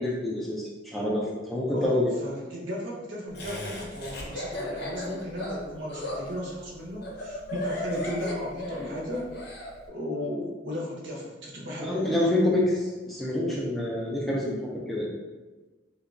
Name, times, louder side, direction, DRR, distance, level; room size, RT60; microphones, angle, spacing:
voice 1, 0.0-2.1 11.8-14.6 14.9-15.1, left 1 dB, ahead, -5 dB, 0.3 m, -27 dB
voice 2, 1.7-9.3 9.9-12.3, left 1 dB, 65° right, -4 dB, 0.7 m, -35 dB
Laughter, 3.3-9.7, left 1 dB, 60° left, 0.5 m, -35 dB
2.9 x 2.1 x 2.5 m, 1.2 s
head